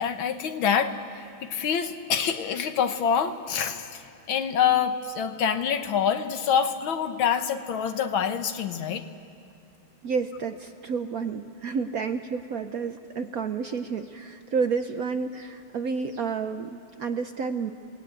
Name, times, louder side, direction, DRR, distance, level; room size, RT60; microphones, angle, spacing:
voice 1, 0.0-9.1, left 7 dB, 70° left, 8 dB, 1.9 m, -26 dB
voice 2, 10.0-17.7, right 5 dB, 60° right, 8 dB, 1.0 m, -30 dB
30.0 x 19.5 x 9.0 m, 2.5 s
omnidirectional pair, 2.3 m